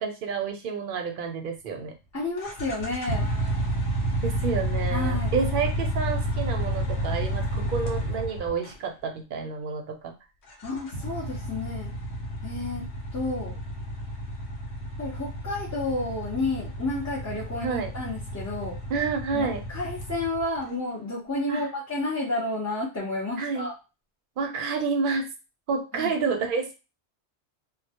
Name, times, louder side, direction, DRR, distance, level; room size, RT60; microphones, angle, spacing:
voice 1, 0.0-1.9 4.2-10.1 17.6-17.9 18.9-19.6 21.5-21.7 23.4-23.7 24.4-25.3 25.7-26.7, right 5 dB, 60° right, 5 dB, 0.6 m, -29 dB
voice 2, 2.1-3.3 4.9-5.3 10.6-11.9 12.4-12.8 13.1-13.6 15.0-18.7 19.3-23.7 25.9-26.1, left 2 dB, 20° left, -7 dB, 0.5 m, -31 dB
sound 1, 2.4-8.8 10.5-20.6, right 1 dB, 75° left, 0.8 m, -30 dB
2.1 x 2.1 x 2.7 m, 0.28 s
omnidirectional pair, 1.2 m